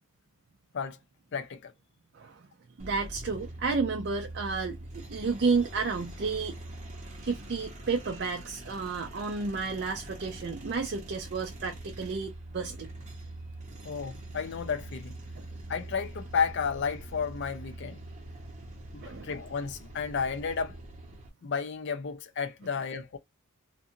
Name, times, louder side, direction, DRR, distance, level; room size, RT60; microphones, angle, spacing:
voice 1, 1.3-1.7 13.8-15.1 15.7-18.0 18.9-20.8 21.4-23.2, left 6 dB, 55° left, 0.5 m, -32 dB
voice 2, 2.1-2.5 2.8-6.6 7.2-12.9 19.0-19.3, right 4 dB, 50° right, 0.4 m, -31 dB
sound 1, 2.8-21.3, right 1 dB, 35° right, 1.0 m, -44 dB
2.6 x 2.4 x 2.6 m
head